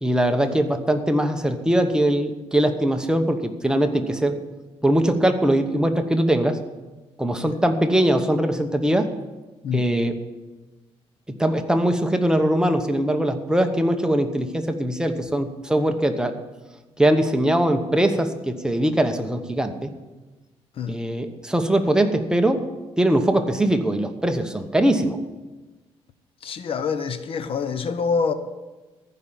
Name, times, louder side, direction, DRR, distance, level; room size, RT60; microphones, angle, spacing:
voice 1, 0.0-4.4 4.8-6.6 7.2-9.1 9.7-10.2 11.4-16.4 17.0-19.9 20.9-22.6 23.0-25.2, right 1 dB, 5° right, 1.0 m, -21 dB
voice 2, 9.6-10.0 20.7-21.0 26.4-28.3, left 5 dB, 55° left, 0.8 m, -26 dB
14.5 x 5.6 x 9.0 m
cardioid pair, 125°, 11 cm